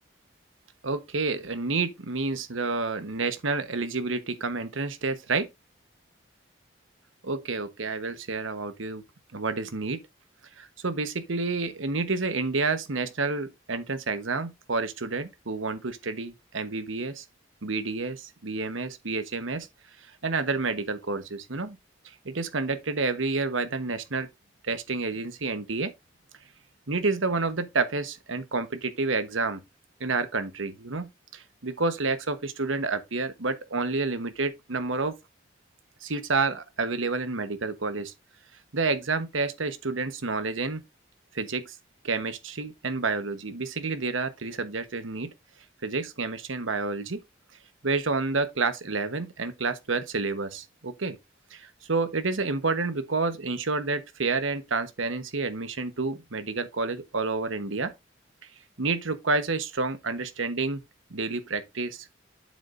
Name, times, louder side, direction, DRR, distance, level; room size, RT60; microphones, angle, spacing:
voice 1, 0.8-5.5 7.2-9.0 9.3-10.0 10.6-17.2 17.6-19.7 20.2-21.8 22.0-24.3 24.6-25.9 26.9-29.6 30.0-35.1 36.0-38.1 38.7-40.8 41.3-41.7 42.0-45.3 45.8-47.2 47.8-51.2 51.5-57.9 58.8-60.8 61.1-62.1, right 3 dB, 90° right, 1.2 m, -29 dB
8.6 x 7.7 x 2.6 m
head